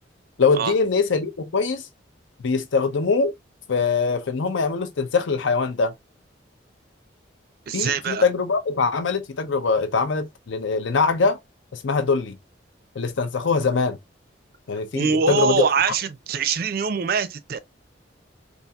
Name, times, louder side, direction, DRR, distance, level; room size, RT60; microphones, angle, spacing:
voice 1, 0.4-1.9 2.4-3.3 3.7-5.9 7.7-11.4 11.7-12.4 13.0-14.0 14.7-15.6, left 4 dB, 80° left, 0.6 m, -22 dB
voice 2, 7.7-8.2 14.9-17.6, right 6 dB, 50° right, 0.4 m, -23 dB
3.9 x 2.4 x 2.3 m
head